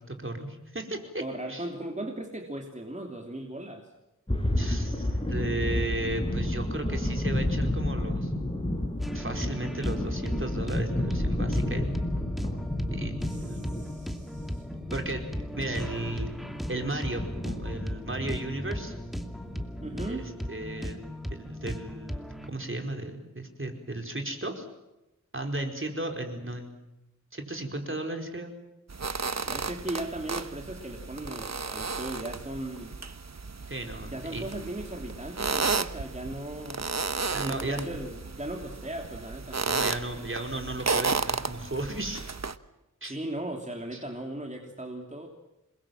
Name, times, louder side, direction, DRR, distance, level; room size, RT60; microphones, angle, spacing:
voice 1, 0.0-1.2 1.5-1.7 4.6-8.3 9.1-11.9 12.9-13.6 14.9-15.3 15.6-16.3 16.7-18.9 20.1-21.0 21.3-24.7 25.3-26.8 27.3-28.5 33.7-34.5 37.3-38.0 39.6-42.2 43.0-43.2 43.9-44.0, right 2 dB, 40° right, 4 dB, 4.7 m, -35 dB
voice 2, 1.2-3.9 13.2-14.6 19.8-20.3 29.5-33.0 34.1-36.8 37.4-39.6 43.0-45.3, right 1 dB, 20° right, 2 dB, 3.1 m, -37 dB
sound 1, 4.3-20.1, left 1 dB, 15° left, 5.9 m, -31 dB
sound 2, 9.0-22.5, equal, ahead, 2.7 m, -37 dB
sound 3, 28.9-42.6, right 4 dB, 55° right, 1.1 m, -33 dB
28.0 x 22.0 x 7.7 m, 0.95 s
wide cardioid pair, 65°, 32 cm